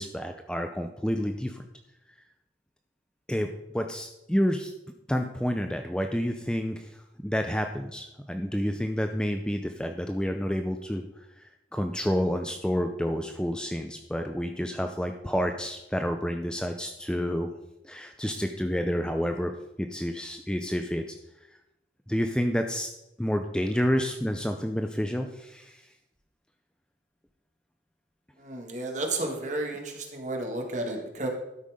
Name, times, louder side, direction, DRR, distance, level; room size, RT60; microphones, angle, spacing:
voice 1, 0.0-1.6 3.3-4.7 5.1-6.9 7.2-11.0 11.7-17.5 17.8-19.5 19.8-21.2 22.1-22.9 23.2-25.8, equal, 5° left, 5 dB, 0.5 m, -29 dB
voice 2, 28.4-31.3, right 2 dB, 45° right, 2 dB, 1.7 m, -32 dB
12.5 x 5.7 x 5.0 m, 0.89 s
head